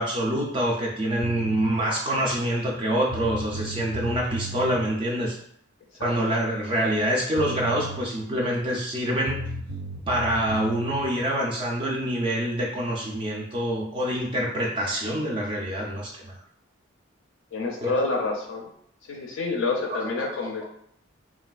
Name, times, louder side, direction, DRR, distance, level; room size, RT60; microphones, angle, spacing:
voice 1, 0.0-5.4 6.0-9.4 10.1-16.4 17.8-18.0 19.9-20.5, right 1 dB, 25° right, -3 dB, 0.3 m, -26 dB
sound 1, 1.2-1.7 2.8-2.9 3.1-4.8 7.0-7.1 7.4-8.0 9.3-11.0, right 1 dB, 85° right, 0.5 m, -35 dB
voice 2, 17.5-18.7 19.1-20.8, left 3 dB, 70° left, 0 dB, 0.4 m, -28 dB
3.2 x 2.3 x 2.3 m, 0.69 s
head